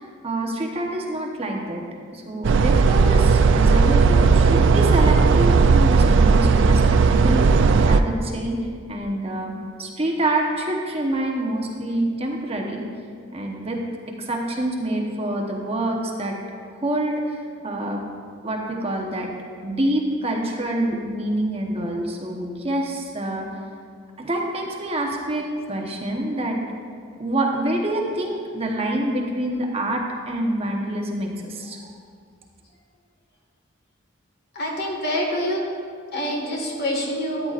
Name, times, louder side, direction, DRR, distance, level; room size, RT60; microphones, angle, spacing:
voice 1, 0.0-1.8 2.1-7.6 7.8-12.8 13.3-13.8 14.1-16.3 16.8-17.4 17.6-18.0 18.4-19.3 19.6-23.5 24.2-26.6 27.2-31.8, right 1 dB, 30° right, 0 dB, 1.0 m, -26 dB
sound 1, 2.4-8.0, right 4 dB, 65° right, 0.4 m, -16 dB
voice 2, 34.5-35.6 36.1-37.5, equal, 55° left, 0 dB, 1.6 m, -26 dB
13.5 x 9.6 x 2.5 m, 2.1 s
head